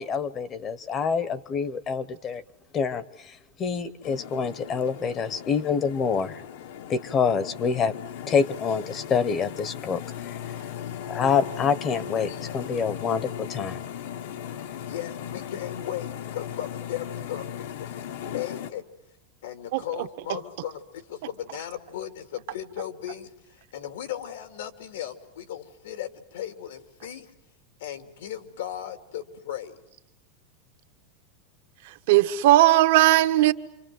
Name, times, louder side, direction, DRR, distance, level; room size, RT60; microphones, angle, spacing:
voice 1, 0.0-2.4 2.7-6.4 6.9-7.9 8.3-10.4 11.1-13.8, left 6 dB, 25° left, 1.0 m, -26 dB
sound 1, 4.0-18.7, left 9 dB, 70° left, 1.3 m, -37 dB
voice 2, 14.8-18.8 19.4-27.3 27.8-29.8, left 11 dB, 85° left, 2.7 m, -37 dB
voice 3, 31.8-33.5, right 15 dB, 60° right, 1.2 m, -18 dB
28.0 x 26.0 x 7.8 m
supercardioid pair, 160°, 0 cm